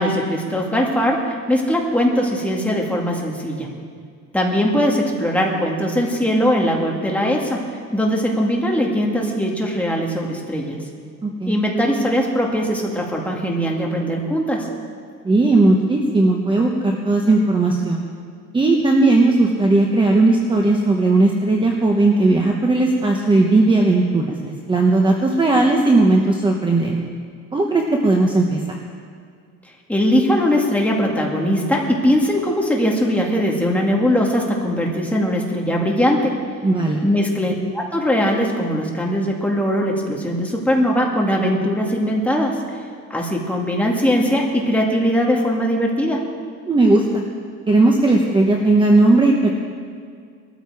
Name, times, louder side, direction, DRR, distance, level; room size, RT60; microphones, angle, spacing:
voice 1, 0.0-3.7 4.3-7.6 7.9-10.8 11.5-14.7 29.9-36.4 37.0-42.6 43.1-46.2, equal, 5° left, -1 dB, 2.0 m, -20 dB
voice 2, 11.2-11.6 15.2-18.0 18.5-27.0 27.5-28.6 36.6-37.0 46.7-47.2 47.7-49.5, right 2 dB, 15° right, 1 dB, 1.1 m, -17 dB
19.5 x 13.0 x 4.8 m, 2.1 s
cardioid pair, 155°, 30 cm